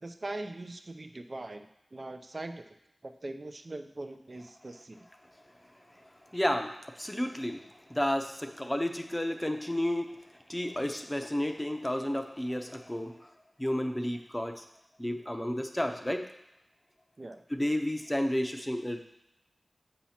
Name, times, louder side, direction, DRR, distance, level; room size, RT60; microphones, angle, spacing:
voice 1, 0.0-2.6 3.0-5.0 17.2-17.4, right 2 dB, 50° right, 8 dB, 0.4 m, -41 dB
voice 2, 6.3-10.2 10.5-13.1 13.6-14.6 15.0-16.2 17.5-19.0, left 1 dB, 15° left, 5 dB, 0.6 m, -31 dB
7.2 x 2.8 x 5.7 m, 0.85 s
cardioid pair, 45°, 0 cm